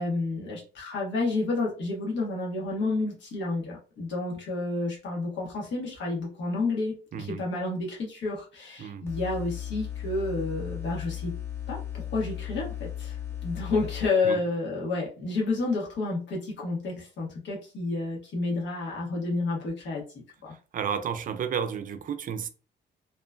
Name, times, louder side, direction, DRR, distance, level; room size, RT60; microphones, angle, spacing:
voice 1, 0.0-11.3 11.7-13.2 13.4-20.0 20.4-20.5, left 3 dB, 80° left, 1.2 m, -30 dB
sound 1, 9.1-14.1, left 11 dB, 15° left, 0.7 m, -36 dB
voice 2, 20.7-22.5, right 7 dB, 45° right, 0.4 m, -32 dB
2.9 x 2.1 x 2.4 m
cardioid pair, 95°, 19 cm